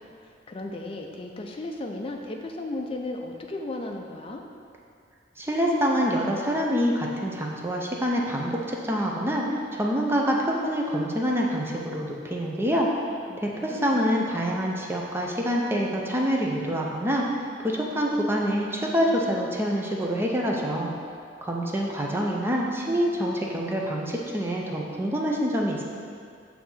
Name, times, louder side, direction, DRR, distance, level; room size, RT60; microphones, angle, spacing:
voice 1, 0.0-4.4 13.3-13.8, left 2 dB, 30° left, 2 dB, 0.5 m, -35 dB
voice 2, 5.4-9.4 9.7-12.9 13.4-17.3 17.6-20.9 21.4-25.8, equal, 15° right, -2 dB, 0.6 m, -26 dB
6.6 x 2.8 x 5.7 m, 2.3 s
head